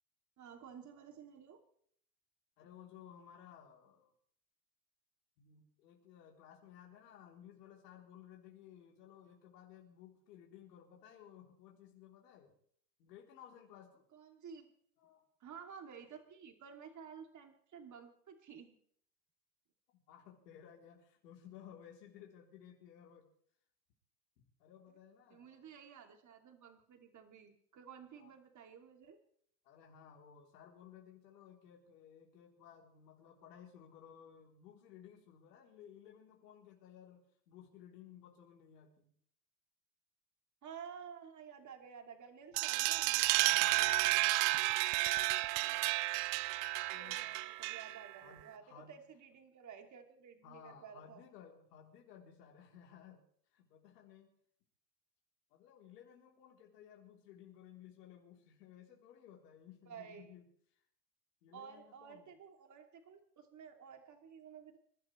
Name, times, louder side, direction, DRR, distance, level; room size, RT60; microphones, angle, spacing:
voice 1, 0.4-1.6 14.1-14.7 15.4-18.8 25.3-29.2 40.6-44.0 46.9-51.2 59.9-60.3 61.5-64.8, right 7 dB, 35° right, 4 dB, 2.8 m, -53 dB
voice 2, 2.6-4.1 5.4-12.5 13.0-14.0 15.0-15.2 19.9-23.3 24.4-25.7 28.2-28.3 29.6-39.1 43.4-44.9 46.8-47.4 48.2-48.9 50.4-53.2 53.5-54.3 55.5-60.4 61.4-62.3, left 9 dB, 70° left, -1 dB, 3.7 m, -57 dB
sound 1, 42.6-48.1, right 19 dB, 55° right, 0.8 m, -32 dB
26.5 x 12.0 x 3.3 m, 0.63 s
hypercardioid pair, 85°, 50 cm